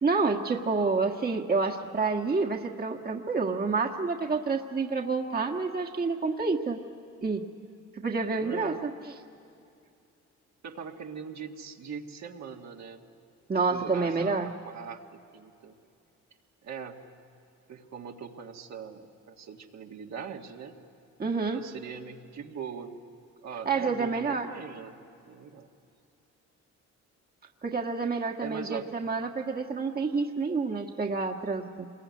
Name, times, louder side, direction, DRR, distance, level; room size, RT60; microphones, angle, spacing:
voice 1, 0.0-6.8 7.2-7.4 8.0-8.9 13.5-14.5 21.2-21.6 23.6-24.5 27.6-31.9, right 4 dB, 30° right, 1 dB, 1.6 m, -28 dB
voice 2, 8.3-8.8 10.6-13.0 13.7-15.0 15.3-15.8 16.6-17.0 17.7-20.7 21.5-22.9 23.4-24.9 25.3-25.7 28.4-28.9, right 6 dB, 65° right, 2 dB, 1.9 m, -41 dB
26.0 x 21.5 x 9.5 m, 2.5 s
cardioid pair, 90°, 30 cm